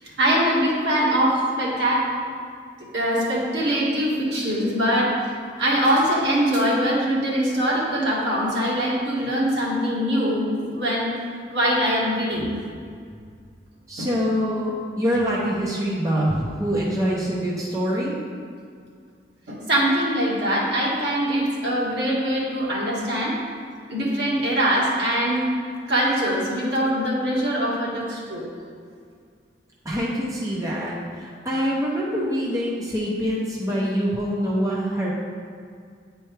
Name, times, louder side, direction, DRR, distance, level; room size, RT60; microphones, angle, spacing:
voice 1, 0.0-2.1 2.9-5.2 5.6-11.1 11.5-12.5 14.0-14.1 19.5-23.3 23.9-25.4 25.9-28.4, equal, 75° right, -6 dB, 1.7 m, -22 dB
voice 2, 13.9-18.2 29.8-35.1, equal, 20° right, -5 dB, 0.8 m, -25 dB
9.2 x 4.5 x 3.3 m, 2.2 s
head